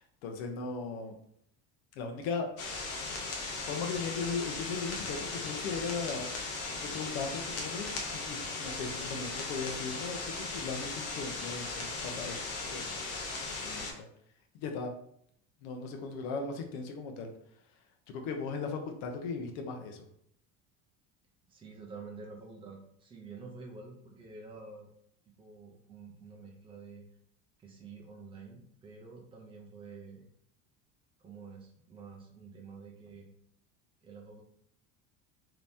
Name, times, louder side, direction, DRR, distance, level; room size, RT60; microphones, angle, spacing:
voice 1, 0.2-1.2 1.9-3.0 3.7-6.3 6.8-12.4 12.7-12.8 13.6-14.1 14.5-14.9 15.6-17.3 18.1-20.0, left 4 dB, 80° left, 4 dB, 0.7 m, -37 dB
sound 1, 2.6-13.9, left 3 dB, 45° left, 0.8 m, -38 dB
voice 2, 21.5-24.9 25.3-27.0 27.6-30.2 31.2-33.3 34.0-34.4, right 4 dB, 15° right, 0 dB, 0.5 m, -49 dB
3.4 x 2.9 x 2.6 m, 0.68 s
cardioid pair, 165°, 32 cm